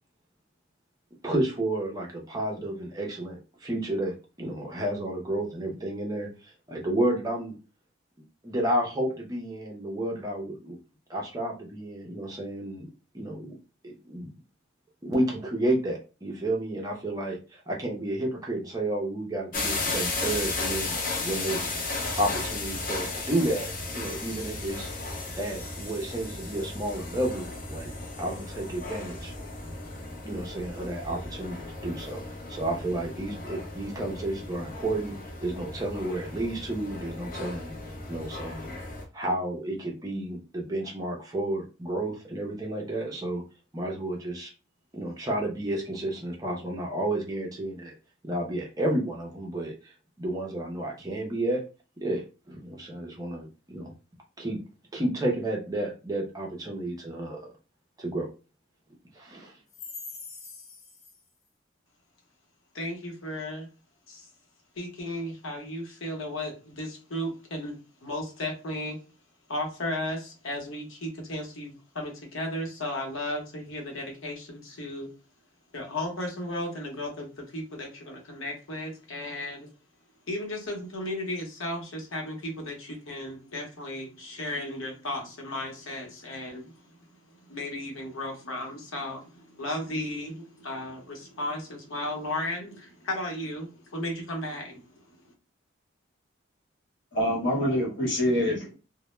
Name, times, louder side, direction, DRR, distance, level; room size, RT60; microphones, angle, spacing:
voice 1, 1.2-7.5 8.4-10.8 11.1-12.9 13.1-13.6 13.8-14.3 15.0-21.7 22.2-24.9 25.4-27.9 28.2-29.3 30.2-32.2 32.5-37.7 38.1-38.7 39.1-43.4 43.7-44.5 44.9-47.9 48.2-51.6 52.0-53.9 54.4-54.6 54.9-57.5 58.0-58.3 59.2-59.5, right 1 dB, 20° right, 0 dB, 0.5 m, -31 dB
sound 1, 19.5-39.0, left 3 dB, 40° left, 0.5 m, -35 dB
voice 2, 62.8-63.6 64.8-67.7 68.0-69.0 69.5-70.2 70.4-75.1 75.7-77.3 77.5-79.6 80.3-86.6 87.5-89.2 89.6-92.8 93.1-93.7 93.9-94.6, left 1 dB, 85° left, 1 dB, 0.8 m, -34 dB
voice 3, 97.1-98.8, equal, 60° left, -2 dB, 1.0 m, -25 dB
2.1 x 2.0 x 3.0 m, 0.33 s
head